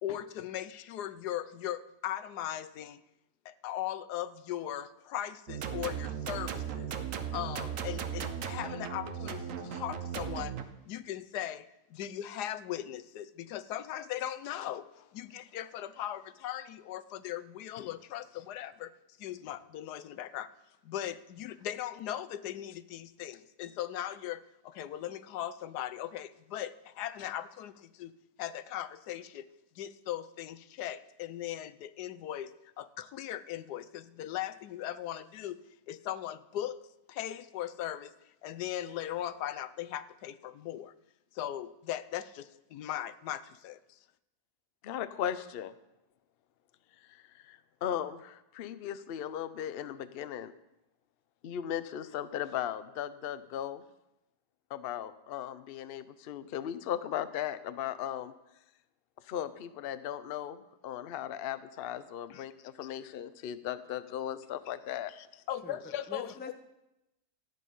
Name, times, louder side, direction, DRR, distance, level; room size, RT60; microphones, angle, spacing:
voice 1, 0.0-3.0 3.4-6.9 7.3-10.6 10.8-18.9 19.2-20.5 20.8-28.1 28.4-29.5 29.8-35.6 35.9-36.8 37.1-38.1 38.4-40.9 41.3-43.8 62.3-62.5 65.1-66.3, left 12 dB, 90° left, 13 dB, 1.2 m, -39 dB
sound 1, 5.5-10.6, right 8 dB, 60° right, 1.2 m, -37 dB
voice 2, 44.8-45.7 47.0-50.5 51.4-53.8 54.7-58.3 59.2-65.4, left 10 dB, 60° left, 13 dB, 0.6 m, -37 dB
voice 3, 65.6-66.5, left 4 dB, 10° left, 7 dB, 0.5 m, -45 dB
14.0 x 9.3 x 5.4 m, 0.91 s
omnidirectional pair, 1.7 m